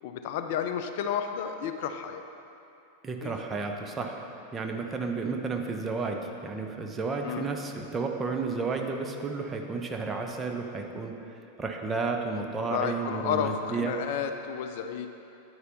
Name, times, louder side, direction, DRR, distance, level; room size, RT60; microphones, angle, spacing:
voice 1, 0.0-2.2 3.2-3.3 7.2-7.5 12.7-15.1, left 8 dB, 50° left, 7 dB, 0.5 m, -31 dB
voice 2, 3.0-11.1 11.6-13.9, right 4 dB, 15° right, 2 dB, 0.9 m, -32 dB
9.7 x 9.7 x 4.0 m, 2.8 s
figure-of-eight pair, 90°, 0 cm